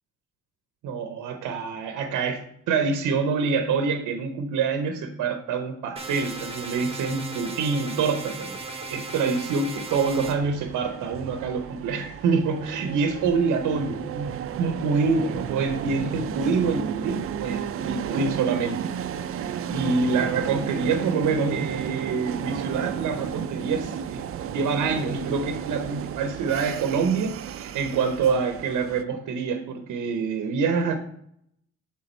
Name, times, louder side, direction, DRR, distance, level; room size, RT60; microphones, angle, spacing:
voice 1, 0.8-14.3 14.6-19.0 19.3-24.2 24.5-31.0, right 5 dB, 80° right, 7 dB, 0.7 m, -26 dB
sound 1, 6.0-10.4, right 3 dB, 20° right, 1.1 m, -36 dB
sound 2, 9.9-29.0, right 9 dB, 50° right, 0.4 m, -33 dB
6.7 x 3.5 x 4.2 m, 0.71 s
cardioid pair, 90°, 30 cm